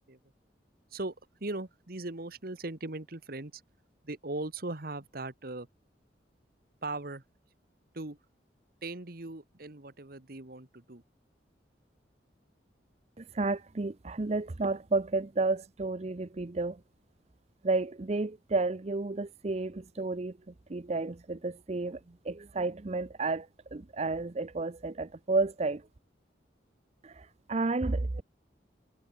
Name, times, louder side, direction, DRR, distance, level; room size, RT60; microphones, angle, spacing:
voice 1, 1.4-3.6 4.0-5.7 6.8-7.2 7.9-8.2 8.8-11.0, right 2 dB, 55° right, 1.6 m, -39 dB
voice 2, 13.2-16.8 17.6-20.3 20.7-22.0 22.2-25.8 27.0-28.2, right 3 dB, 35° right, 0.6 m, -31 dB
head